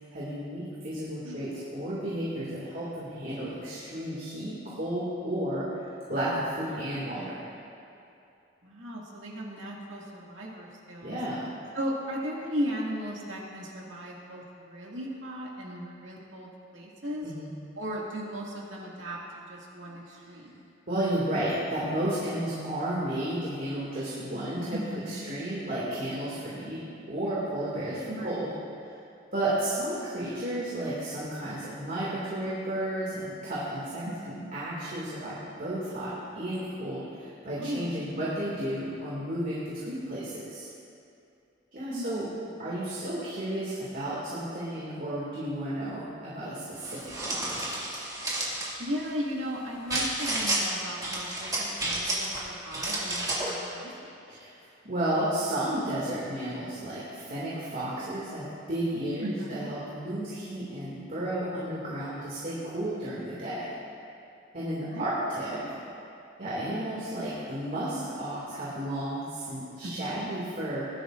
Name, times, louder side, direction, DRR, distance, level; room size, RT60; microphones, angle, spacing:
voice 1, 0.1-5.7 6.1-7.3 11.0-11.5 17.2-17.5 20.9-28.5 29.3-34.0 34.5-40.7 41.7-42.3 42.6-47.5 54.3-54.6 54.8-63.6 64.5-65.6 66.4-70.9, right 1 dB, 45° right, -8 dB, 2.4 m, -32 dB
voice 2, 8.6-11.2 11.7-17.3 17.8-19.2 19.5-20.6 24.7-25.3 28.1-28.3 34.0-34.5 37.6-38.3 41.9-42.1 42.5-42.6 48.8-54.2 59.2-59.7 64.8-65.1 65.6-65.8 69.8-70.3, equal, 70° right, -3 dB, 2.3 m, -36 dB
sound 1, 46.8-48.7 49.9-50.6 51.0-52.4 52.7-53.5, right 2 dB, 20° right, 2.2 m, -31 dB
19.0 x 12.0 x 2.6 m, 2.6 s
head